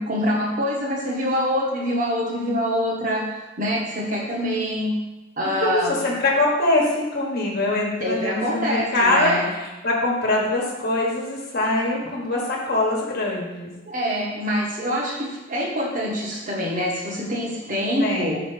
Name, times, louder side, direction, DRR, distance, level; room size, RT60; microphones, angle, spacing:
voice 1, 0.0-5.0 5.4-5.9 8.0-9.5 13.9-18.4, equal, 45° right, -2 dB, 1.3 m, -25 dB
voice 2, 5.4-13.7 18.0-18.4, left 2 dB, 50° left, -2 dB, 1.2 m, -23 dB
5.7 x 4.1 x 4.8 m, 1.1 s
head